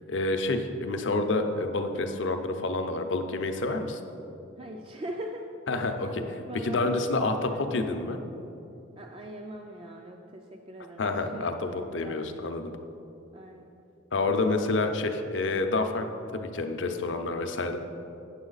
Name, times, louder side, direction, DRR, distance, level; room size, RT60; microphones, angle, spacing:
voice 1, 0.1-4.0 5.7-8.2 11.0-12.7 14.1-16.1 16.3-17.8, left 2 dB, 65° left, 6 dB, 0.6 m, -28 dB
voice 2, 4.6-5.5 5.7-5.9 6.4-7.6 8.9-12.2 13.3-13.7, right 1 dB, 30° right, 2 dB, 0.4 m, -41 dB
8.9 x 7.1 x 4.0 m, 2.8 s
head